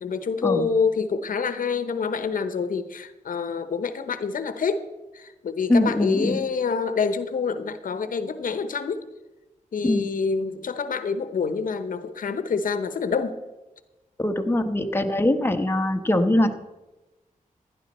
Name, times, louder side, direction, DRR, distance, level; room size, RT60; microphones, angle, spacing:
voice 1, 0.0-4.9 5.1-9.0 9.7-13.4, left 5 dB, 75° left, 11 dB, 0.9 m, -27 dB
voice 2, 5.7-6.4 9.8-10.1 14.2-16.5, left 1 dB, 15° left, 5 dB, 1.1 m, -22 dB
16.0 x 10.5 x 4.3 m, 1.1 s
wide cardioid pair, 100°, 14 cm